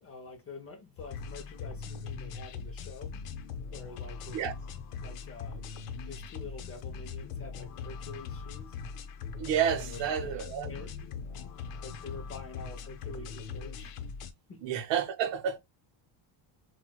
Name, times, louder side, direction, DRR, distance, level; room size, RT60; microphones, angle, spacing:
voice 1, 0.0-3.1 3.7-4.5 5.0-5.6 6.0-8.8 9.8-10.3 10.7-10.9 11.8-14.0 14.5-14.6, left 4 dB, 30° left, 0.5 m, -46 dB
sound 1, 1.0-14.3, left 5 dB, 80° left, 0.7 m, -41 dB
voice 2, 9.4-10.7 14.6-15.6, right 9 dB, 60° right, 0.6 m, -30 dB
4.3 x 2.2 x 2.2 m
cardioid pair, 165°, 50 cm